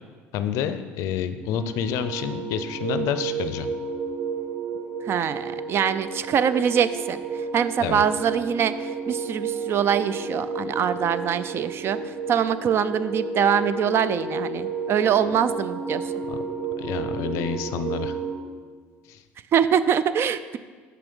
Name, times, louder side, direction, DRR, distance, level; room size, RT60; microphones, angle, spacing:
voice 1, 0.3-3.7 7.8-8.0 16.3-16.4 16.8-18.1 19.1-19.2, left 8 dB, 70° left, 11 dB, 0.5 m, -28 dB
sound 1, 1.5-18.4, right 4 dB, 75° right, 1.9 m, -32 dB
voice 2, 5.1-7.2 7.5-16.1 19.5-20.6, right 8 dB, 50° right, 13 dB, 0.4 m, -24 dB
6.2 x 5.6 x 5.4 m, 1.5 s
supercardioid pair, 80°, 5 cm